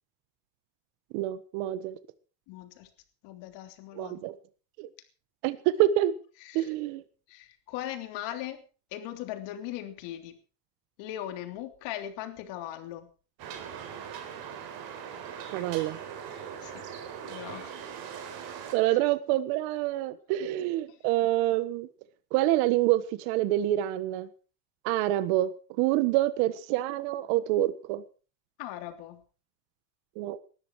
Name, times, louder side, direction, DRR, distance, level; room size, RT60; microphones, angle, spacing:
voice 1, 1.1-2.0 4.0-4.3 4.8-4.9 5.4-6.1 6.5-7.0 15.5-16.0 18.7-21.9 22.3-24.3 24.8-25.5 25.8-28.0 30.2-30.4, right 14 dB, 90° right, 14 dB, 1.4 m, -26 dB
voice 2, 2.5-2.9 3.2-4.2 6.4-6.7 7.3-8.6 8.9-10.4 11.0-13.1 16.6-16.9 17.3-17.7 18.9-19.0 20.4-21.0 28.6-29.2, left 12 dB, 70° left, 7 dB, 3.3 m, -39 dB
sound 1, 13.4-18.7, right 8 dB, 50° right, 4.2 m, -40 dB
19.5 x 13.5 x 4.7 m, 0.38 s
cardioid pair, 160°, 46 cm